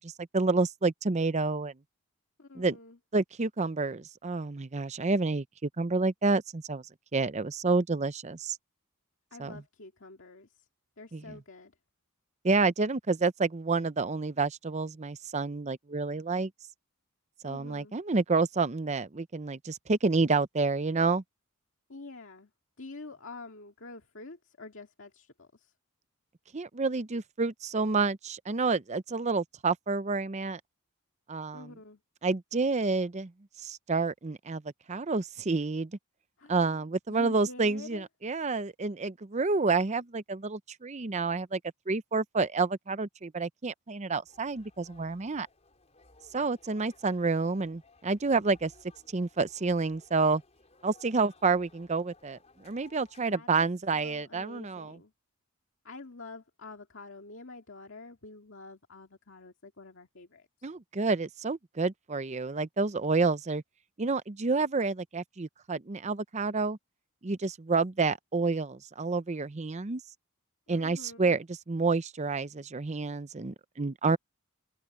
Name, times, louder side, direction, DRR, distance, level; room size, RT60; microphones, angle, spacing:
voice 1, 0.0-1.7 2.5-2.8 3.1-6.8 7.1-8.6 9.4-9.6 11.1-11.4 12.4-16.5 17.4-21.2 26.5-30.6 31.3-31.6 32.2-33.3 33.6-34.6 34.9-35.9 36.5-41.6 41.9-45.5 46.3-48.7 49.1-50.4 50.8-55.0 60.6-63.6 64.0-66.8 67.2-70.0 70.7-74.2, right 3 dB, 30° right, 0.6 m, -29 dB
voice 2, 2.4-3.0 9.3-10.7 11.0-11.7 17.4-18.0 21.9-22.5 22.8-25.7 31.5-32.0 36.4-36.8 37.1-38.1 53.3-53.6 53.9-55.1 55.8-60.7 70.7-71.3, left 3 dB, 55° left, 2.2 m, -47 dB
sound 1, 44.3-53.4, left 3 dB, 30° left, 5.1 m, -60 dB
head